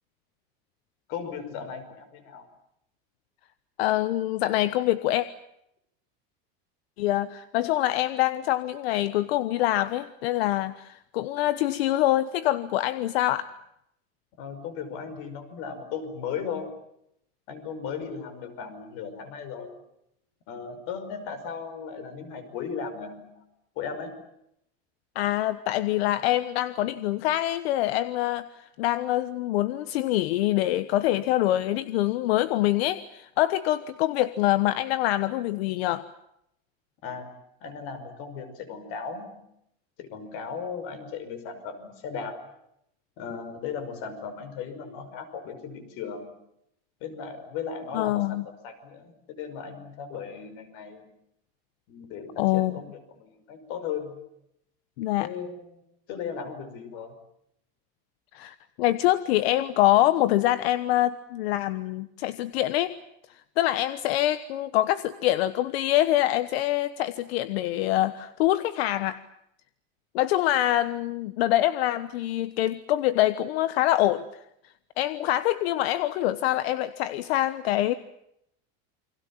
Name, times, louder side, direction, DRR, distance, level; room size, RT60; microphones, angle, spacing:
voice 1, 1.1-2.5 14.4-16.7 17.5-19.8 20.5-23.4 23.8-24.2 37.0-37.3 37.6-39.4 40.0-42.4 43.2-46.3 47.0-51.1 51.9-54.2 55.2-55.8 56.1-57.1, left 6 dB, 45° left, 10 dB, 5.5 m, -36 dB
voice 2, 3.8-5.3 7.0-13.5 25.1-36.1 47.9-48.4 52.4-52.7 55.0-55.3 58.3-62.9 63.6-69.2 70.1-74.2 75.0-77.9, left 14 dB, 75° left, 14 dB, 1.3 m, -25 dB
29.5 x 24.5 x 7.4 m, 0.78 s
supercardioid pair, 175°, 31 cm